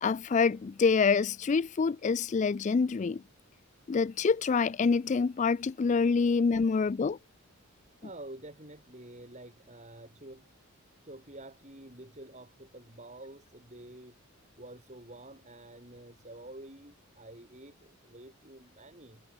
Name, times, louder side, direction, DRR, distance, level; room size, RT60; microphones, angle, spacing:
voice 1, 0.0-3.2 3.9-7.2, left 5 dB, 35° left, 0.3 m, -26 dB
voice 2, 8.0-10.5 11.0-14.2 14.6-19.2, right 1 dB, 30° right, 6.7 m, -49 dB
head